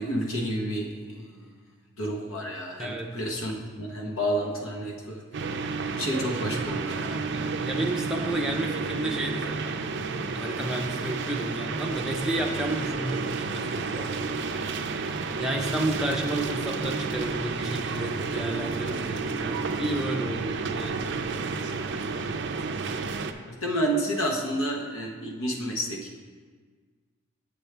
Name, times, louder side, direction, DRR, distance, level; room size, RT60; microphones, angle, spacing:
voice 1, 0.0-1.5 2.0-5.2 5.8-7.2 23.4-26.2, equal, 75° left, 0 dB, 1.1 m, -30 dB
sound 1, 5.3-23.3, right 4 dB, 55° right, 0.4 m, -31 dB
voice 2, 7.3-14.3 15.4-21.1, right 1 dB, 5° right, -1 dB, 0.6 m, -32 dB
7.9 x 7.1 x 3.3 m, 1.5 s
head